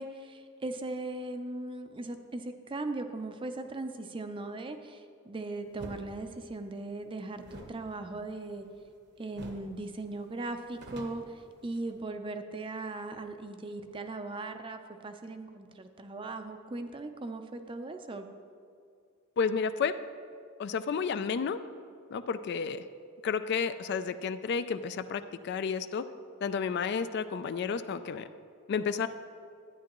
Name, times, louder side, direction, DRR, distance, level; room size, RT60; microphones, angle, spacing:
voice 1, 0.0-8.7 9.2-18.3, right 2 dB, 25° right, 7 dB, 0.5 m, -38 dB
sound 1, 5.7-6.0 7.4-9.0 9.3-9.7 10.0-10.1 10.5-12.0, right 1 dB, 55° right, 0.9 m, -47 dB
voice 2, 19.4-19.9 20.6-21.6 22.1-22.8 23.2-26.1 26.4-28.3 28.7-29.1, left 6 dB, 50° left, 12 dB, 0.3 m, -31 dB
12.0 x 9.3 x 3.0 m, 2.3 s
head